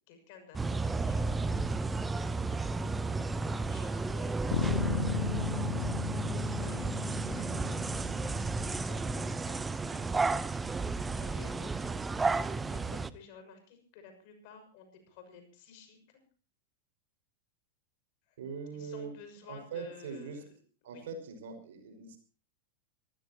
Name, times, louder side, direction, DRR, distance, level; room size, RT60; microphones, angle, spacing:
voice 1, 0.0-16.2 18.3-18.4 18.7-20.5 20.8-21.1, left 6 dB, 45° left, 6 dB, 6.5 m, -54 dB
sound 1, 0.5-13.1, right 3 dB, 10° right, 0.8 m, -33 dB
Bass guitar, 4.5-8.9, left 6 dB, 65° left, 1.0 m, -36 dB
voice 2, 18.4-19.1 19.5-20.4 20.8-22.2, right 5 dB, 60° right, 6 dB, 5.5 m, -42 dB
25.5 x 15.5 x 2.9 m, 0.37 s
figure-of-eight pair, 90°, 0 cm